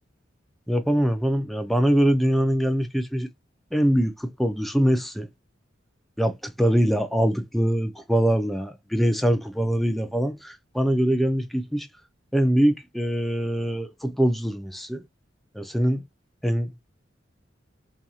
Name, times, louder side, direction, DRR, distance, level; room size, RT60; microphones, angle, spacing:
voice 1, 0.7-3.3 3.7-5.3 6.2-11.9 12.3-15.0 15.5-16.0 16.4-16.7, equal, ahead, 0.4 m, -23 dB
2.8 x 2.6 x 2.3 m
head